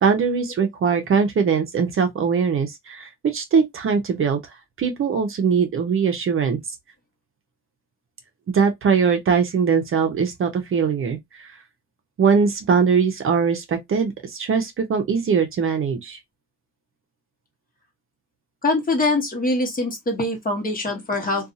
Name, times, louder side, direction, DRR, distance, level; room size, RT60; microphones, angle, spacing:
voice 1, 0.0-4.4 4.8-6.6 8.5-11.5 12.2-16.2, right 6 dB, 45° right, 0.6 m, -21 dB
voice 2, 18.6-21.5, left 2 dB, 30° left, 1.1 m, -23 dB
2.6 x 2.3 x 2.6 m
cardioid pair, 90°, 30 cm